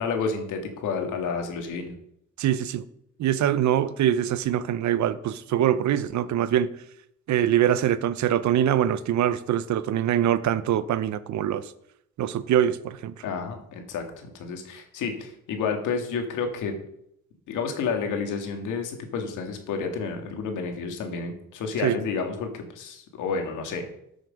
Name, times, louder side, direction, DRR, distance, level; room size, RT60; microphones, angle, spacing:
voice 1, 0.0-1.9 13.2-16.7 17.5-23.9, left 5 dB, 85° left, 1.9 m, -30 dB
voice 2, 2.4-2.8 3.2-6.7 7.3-11.7 12.2-13.1 21.8-22.0, right 10 dB, 70° right, 0.7 m, -23 dB
12.5 x 6.3 x 5.2 m
cardioid pair, 90°, 30 cm